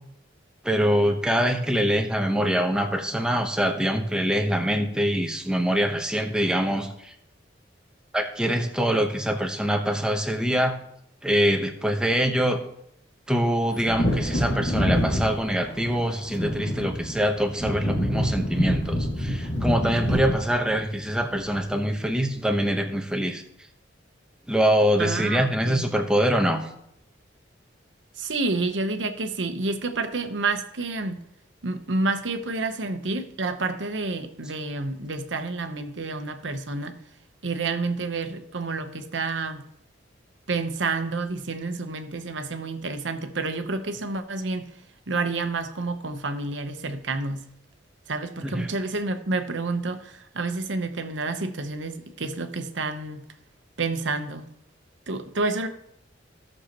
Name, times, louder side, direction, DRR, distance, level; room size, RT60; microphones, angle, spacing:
voice 1, 0.6-7.2 8.1-10.8 11.2-12.6 13.3-23.4 24.5-26.7 48.4-48.7, equal, 5° right, 4 dB, 1.0 m, -24 dB
Wind / Thunder, 13.7-22.0 22.3-22.4, equal, 85° left, 2.1 m, -27 dB
voice 2, 25.0-25.8 28.2-31.2 31.6-37.0 37.4-39.6 40.5-44.7 45.1-47.4 48.1-53.2 53.8-54.5 55.1-55.7, right 3 dB, 75° right, 8 dB, 1.0 m, -29 dB
16.0 x 6.6 x 3.0 m, 0.76 s
head